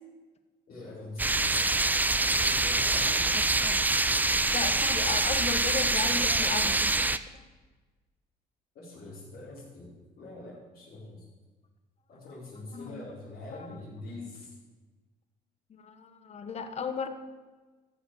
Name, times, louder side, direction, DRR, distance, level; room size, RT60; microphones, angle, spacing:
voice 1, 0.7-1.5 2.1-3.4 8.7-11.2 12.1-14.5, left 2 dB, 65° left, -10 dB, 5.0 m, -44 dB
sound 1, 1.2-7.2, right 2 dB, 10° right, 0.5 m, -25 dB
voice 2, 4.4-7.4 12.7-13.0 13.6-13.7 15.8-17.1, left 5 dB, 40° left, 9 dB, 1.2 m, -35 dB
14.5 x 7.1 x 7.2 m, 1.3 s
cardioid pair, 110°, 17 cm